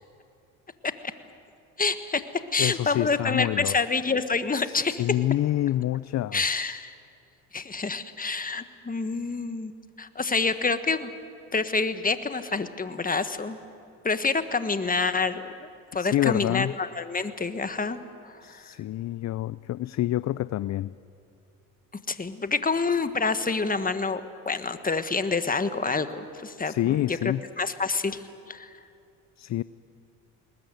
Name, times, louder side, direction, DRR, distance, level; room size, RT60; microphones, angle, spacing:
voice 1, 1.8-2.2 2.5-5.0 6.3-6.9 7.5-11.1 11.5-13.6 14.0-18.6 22.1-28.7, left 4 dB, 20° left, 11 dB, 1.5 m, -28 dB
voice 2, 2.6-3.8 4.6-6.7 16.0-16.7 18.4-20.9 26.7-27.4 29.4-29.6, left 14 dB, 45° left, 18 dB, 0.5 m, -27 dB
20.5 x 20.5 x 9.3 m, 2.7 s
supercardioid pair, 70°, 41 cm